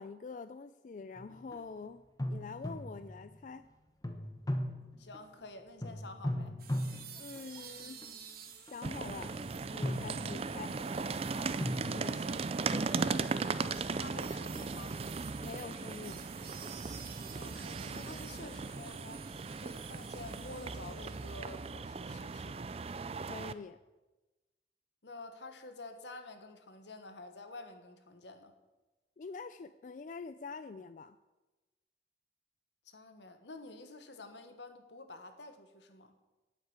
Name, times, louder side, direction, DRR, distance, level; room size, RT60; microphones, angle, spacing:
voice 1, 0.0-3.7 7.2-8.0 8.7-9.4 9.7-10.8 11.9-12.3 15.4-16.2 23.3-23.8 29.2-31.2, left 4 dB, 45° left, 12 dB, 0.3 m, -45 dB
sound 1, 1.2-1.6 2.2-3.4 4.0-5.4 5.8-8.1 8.7-9.0 9.6-10.8 11.6-12.0, left 1 dB, 20° left, 1.1 m, -38 dB
voice 2, 5.0-6.5 10.5-11.6 12.1-15.0 17.3-19.3 19.5-22.7 25.0-28.5 32.8-36.1, left 2 dB, 80° left, 8 dB, 1.4 m, -50 dB
sound 2, 6.6-21.8, right 8 dB, 55° right, 1.6 m, -52 dB
sound 3, 8.8-23.5, right 4 dB, 35° right, 0.4 m, -37 dB
9.3 x 8.4 x 8.1 m, 1.1 s
head